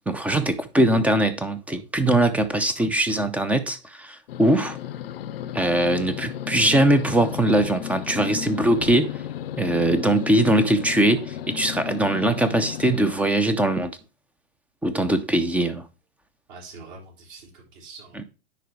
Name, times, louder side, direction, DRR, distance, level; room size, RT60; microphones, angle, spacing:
voice 1, 0.1-4.8 5.5-9.2 9.6-14.0 14.8-15.8 18.2-18.3, right 1 dB, 5° right, 0.6 m, -21 dB
sound 1, 4.3-13.1, left 10 dB, 60° left, 0.7 m, -34 dB
voice 2, 16.5-18.3, right 3 dB, 50° right, 4.2 m, -44 dB
10.0 x 4.0 x 4.5 m
hypercardioid pair, 130°, 32 cm